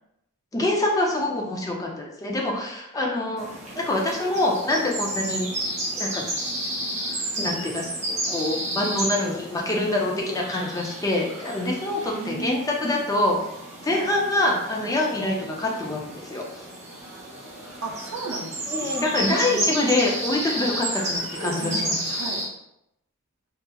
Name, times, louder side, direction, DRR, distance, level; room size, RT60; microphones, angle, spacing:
voice 1, 0.5-3.5 3.7-5.5 5.9-6.2 7.4-13.4 13.8-16.4 18.7-21.9, left 2 dB, 15° left, -1 dB, 0.4 m, -25 dB
sound 1, 3.4-22.4, right 1 dB, 30° right, 0.8 m, -32 dB
voice 2, 12.0-12.6 13.9-14.1 17.8-19.7 21.1-22.4, right 3 dB, 70° right, 2 dB, 0.5 m, -35 dB
2.8 x 2.4 x 2.2 m, 0.83 s
head